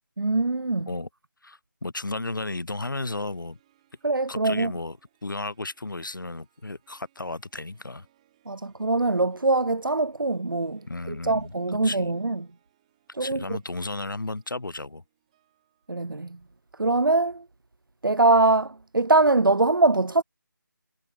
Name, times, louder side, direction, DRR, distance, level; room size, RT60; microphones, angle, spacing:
voice 1, 0.2-0.9 4.0-4.7 8.5-12.4 13.1-13.4 15.9-16.4 16.8-17.4 18.0-20.2, right 2 dB, 85° right, 0.6 m, -23 dB
voice 2, 1.4-3.6 4.3-5.0 5.2-8.1 10.9-11.5 11.8-12.1 13.2-15.0, left 2 dB, 70° left, 2.4 m, -33 dB
Harp, 2.8-17.3, right 13 dB, 20° right, 5.7 m, -70 dB
figure-of-eight pair, 160°, 11 cm